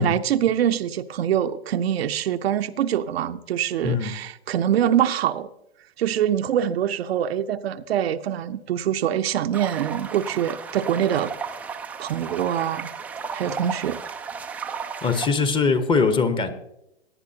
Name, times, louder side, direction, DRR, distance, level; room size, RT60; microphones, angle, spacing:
voice 1, 0.0-5.5 6.0-11.3 12.0-12.9 13.3-14.0, right 10 dB, 70° right, 0.7 m, -24 dB
sound 1, 9.5-15.3, right 5 dB, 5° right, 0.3 m, -34 dB
voice 2, 15.0-16.5, left 5 dB, 15° left, 0.9 m, -21 dB
18.0 x 10.5 x 2.8 m
hypercardioid pair, 125°, 32 cm